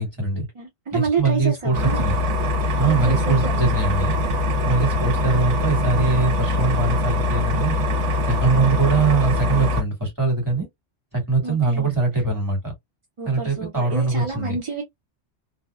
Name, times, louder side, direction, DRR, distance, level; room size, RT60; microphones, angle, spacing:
voice 1, 0.0-0.5 0.9-2.2 2.8-4.2 4.6-7.7 8.2-10.7 11.1-12.7 13.2-14.6, right 4 dB, 15° right, 1.6 m, -22 dB
voice 2, 0.6-2.1 2.9-3.5 11.4-11.9 13.2-14.8, right 5 dB, 40° right, 0.5 m, -28 dB
sound 1, 1.7-9.8, left 2 dB, 80° right, 1.0 m, -22 dB
2.7 x 2.0 x 2.2 m
omnidirectional pair, 1.2 m